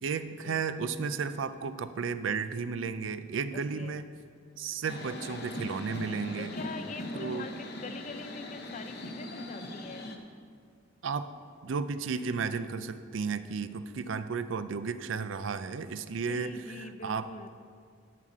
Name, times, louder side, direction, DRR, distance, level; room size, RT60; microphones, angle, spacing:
voice 1, 0.0-4.0 4.6-6.5 7.1-7.5 11.0-11.3 11.6-17.5, right 5 dB, 75° right, 12 dB, 0.4 m, -33 dB
voice 2, 3.5-4.0 6.4-10.1 16.2-17.5, left 3 dB, 40° left, 9 dB, 0.5 m, -44 dB
sound 1, 4.8-10.2, left 1 dB, 55° left, 0.9 m, -40 dB
12.0 x 4.1 x 7.3 m, 2.1 s
head